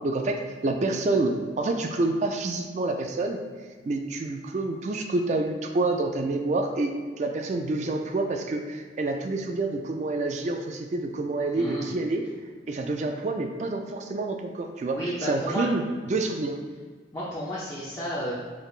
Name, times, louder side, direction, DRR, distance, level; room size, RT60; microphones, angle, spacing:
voice 1, 0.0-3.4 3.9-12.2 12.7-16.6, right 2 dB, 40° right, 4 dB, 0.3 m, -28 dB
voice 2, 11.5-11.9 14.9-15.7 17.1-18.3, equal, 20° left, -8 dB, 0.6 m, -32 dB
4.8 x 3.3 x 2.4 m, 1.6 s
head